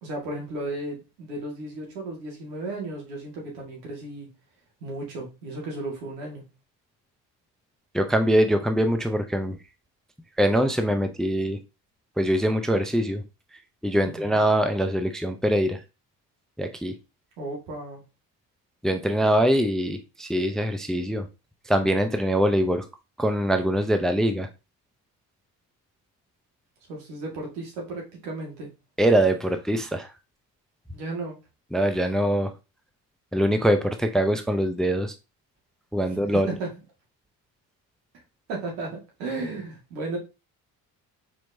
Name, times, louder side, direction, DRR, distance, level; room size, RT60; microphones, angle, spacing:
voice 1, 0.0-4.3 4.8-6.5 14.0-14.4 17.4-18.0 26.9-28.7 30.9-31.4 36.1-36.7 38.5-40.2, right 2 dB, 75° right, 2.0 m, -34 dB
voice 2, 7.9-9.6 10.4-11.6 12.2-13.2 13.8-15.8 16.6-17.0 18.8-21.3 21.7-22.9 23.2-24.5 29.0-30.1 31.7-32.5 33.3-35.1 35.9-36.5, equal, ahead, 0.6 m, -23 dB
4.5 x 4.4 x 2.7 m
hypercardioid pair, 50°, 49 cm